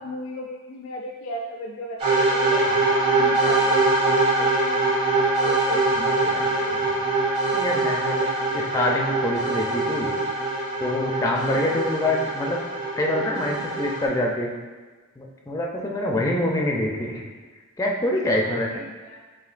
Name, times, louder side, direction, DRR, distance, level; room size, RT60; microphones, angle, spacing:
voice 1, 0.0-7.3 11.4-11.7 15.8-16.2 18.4-19.2, left 1 dB, 80° left, 0 dB, 0.4 m, -37 dB
sound 1, 2.0-14.1, right 2 dB, 25° right, 1.1 m, -23 dB
voice 2, 7.5-8.3 8.5-10.1 10.8-12.6 13.0-14.6 15.2-17.3 17.8-18.7, left 1 dB, 15° left, -1 dB, 0.4 m, -25 dB
4.9 x 3.0 x 2.4 m, 1.4 s
head